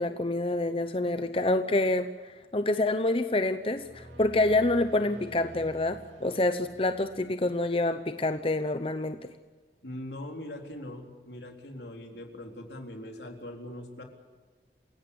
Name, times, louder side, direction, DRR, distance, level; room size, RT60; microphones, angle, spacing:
voice 1, 0.0-2.1 2.5-9.2, left 2 dB, 30° left, 9 dB, 0.8 m, -27 dB
sound 1, 3.5-7.8, equal, 90° right, 4.7 m, -49 dB
voice 2, 9.8-14.0, left 1 dB, 75° left, 3 dB, 3.8 m, -41 dB
28.0 x 17.0 x 8.6 m, 1.4 s
head